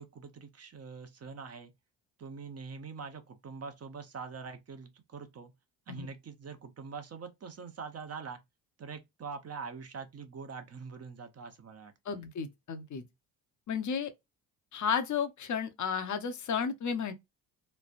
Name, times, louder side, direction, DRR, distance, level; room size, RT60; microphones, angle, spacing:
voice 1, 0.0-1.7 2.2-5.5 5.9-8.4 8.8-12.2, right 5 dB, 35° right, 0.9 m, -44 dB
voice 2, 12.0-13.0 13.7-14.1 14.7-17.1, left 7 dB, 40° left, 0.8 m, -33 dB
3.2 x 2.1 x 2.4 m
supercardioid pair, 65°, 45 cm